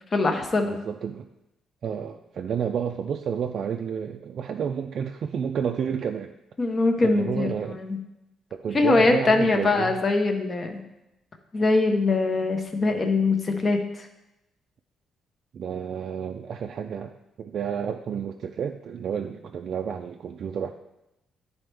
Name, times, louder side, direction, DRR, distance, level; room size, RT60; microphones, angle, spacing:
voice 1, 0.1-0.7 6.6-8.0 8.7-10.8 11.5-14.1, left 3 dB, 30° left, 5 dB, 0.9 m, -22 dB
voice 2, 0.7-1.3 1.8-6.3 7.0-7.8 8.5-10.0 15.5-20.7, right 7 dB, 55° right, 4 dB, 0.3 m, -30 dB
10.5 x 4.2 x 3.4 m, 0.92 s
cardioid pair, 130°, 0 cm